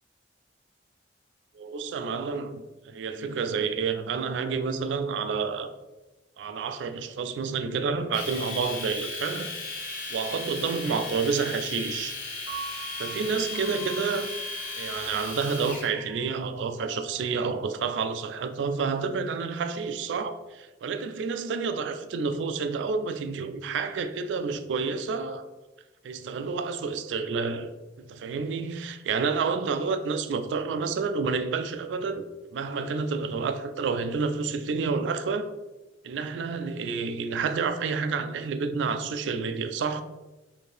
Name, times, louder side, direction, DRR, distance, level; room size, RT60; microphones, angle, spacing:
voice 1, 1.5-5.7 6.4-9.5 10.1-12.2 13.0-14.3 14.8-25.4 26.0-27.7 28.0-32.2 32.5-35.5 36.0-40.0, right 5 dB, 80° right, 0.3 m, -29 dB
Domestic sounds home sounds, 8.1-15.9, left 3 dB, 50° left, 0.8 m, -36 dB
Piano, 12.5-18.6, right 3 dB, 80° left, 1.0 m, -45 dB
4.3 x 2.7 x 3.2 m
head